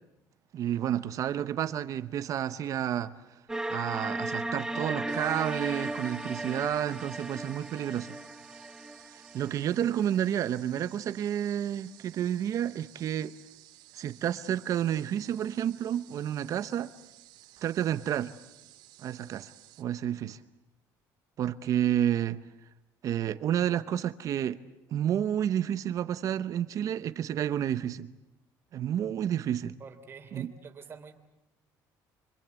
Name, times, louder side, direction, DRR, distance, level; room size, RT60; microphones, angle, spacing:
voice 1, 0.5-3.1 3.7-8.2 9.1-13.3 13.9-16.9 17.6-18.3 19.0-19.5 19.8-20.4 21.4-22.4 23.0-24.6 24.9-28.1 28.7-29.7 30.3-30.5, right 10 dB, 50° right, 0.9 m, -30 dB
sound 1, 3.5-10.5, right 2 dB, 10° right, 0.9 m, -36 dB
sound 2, 4.5-4.6 5.1-19.8, right 16 dB, 80° right, 2.0 m, -55 dB
voice 2, 29.8-31.1, right 5 dB, 30° right, 3.3 m, -47 dB
26.5 x 25.5 x 8.3 m
cardioid pair, 145°, 7 cm